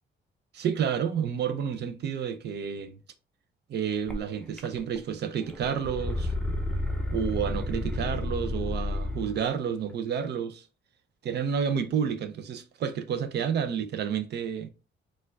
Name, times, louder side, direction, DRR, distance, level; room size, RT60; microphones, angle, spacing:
voice 1, 0.5-3.0 3.7-6.3 7.1-10.7 11.2-14.7, right 7 dB, 55° right, 0.5 m, -30 dB
sound 1, 4.1-4.2 4.6-5.1 5.4-9.4, left 1 dB, 5° left, 0.6 m, -31 dB
4.2 x 2.3 x 2.4 m
cardioid pair, 90°, 20 cm